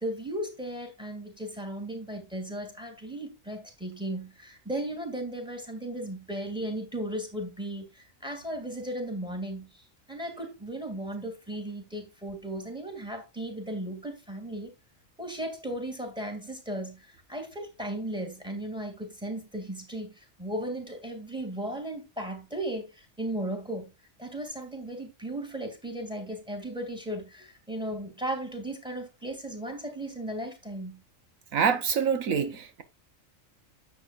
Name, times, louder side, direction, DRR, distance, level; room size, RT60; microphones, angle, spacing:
voice 1, 0.0-14.7 15.2-23.9 24.2-31.0, right 1 dB, 5° right, 2.5 m, -36 dB
voice 2, 31.5-32.8, right 7 dB, 85° right, 1.5 m, -26 dB
10.5 x 7.8 x 2.5 m
omnidirectional pair, 1.4 m